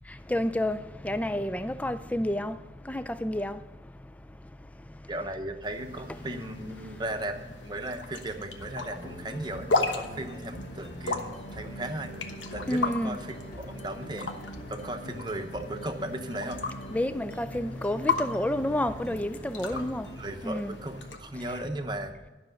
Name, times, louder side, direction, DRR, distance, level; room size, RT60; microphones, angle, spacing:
voice 1, 0.3-0.8 1.0-2.6 2.9-3.6 12.7-13.2 16.9-20.1 20.4-20.7, left 1 dB, 10° left, 0.3 m, -29 dB
voice 2, 5.1-9.7 9.9-12.1 12.5-14.3 14.7-16.6 19.7-22.1, right 1 dB, 25° right, 0.9 m, -36 dB
sound 1, 5.6-21.2, left 3 dB, 85° left, 1.2 m, -36 dB
sound 2, 8.6-20.5, equal, 55° left, 2.7 m, -43 dB
12.0 x 6.3 x 7.7 m
head